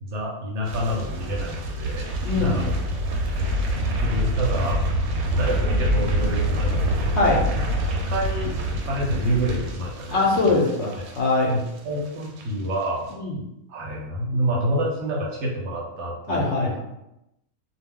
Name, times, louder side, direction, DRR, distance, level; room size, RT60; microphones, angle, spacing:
voice 1, 0.0-2.8 3.2-4.8 5.3-7.2 8.1-8.5 8.9-10.4 11.0-11.1 11.5-13.1 13.7-16.7, equal, 65° right, -2 dB, 0.8 m, -28 dB
sound 1, 0.6-11.8 12.1-12.4 12.7-12.8, equal, 85° right, 1.0 m, -26 dB
voice 2, 2.2-2.6 7.1-7.4 10.1-11.5 13.2-13.4 16.3-16.8, left 3 dB, 65° left, -2 dB, 0.8 m, -22 dB
2.3 x 2.1 x 3.5 m, 0.87 s
omnidirectional pair, 1.5 m